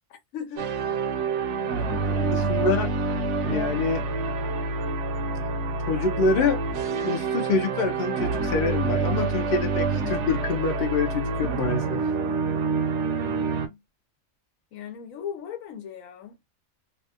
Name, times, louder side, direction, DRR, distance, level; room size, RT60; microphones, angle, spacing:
voice 1, 0.3-0.7 1.8-2.7 13.2-13.8 14.7-16.3, left 8 dB, 80° left, 1.1 m, -39 dB
sound 1, 0.6-13.7, right 4 dB, 65° right, 0.8 m, -27 dB
voice 2, 2.0-2.9 3.4-4.0 5.9-6.6 7.0-12.0, left 4 dB, 55° left, 0.6 m, -26 dB
2.6 x 2.3 x 2.7 m
omnidirectional pair, 1.4 m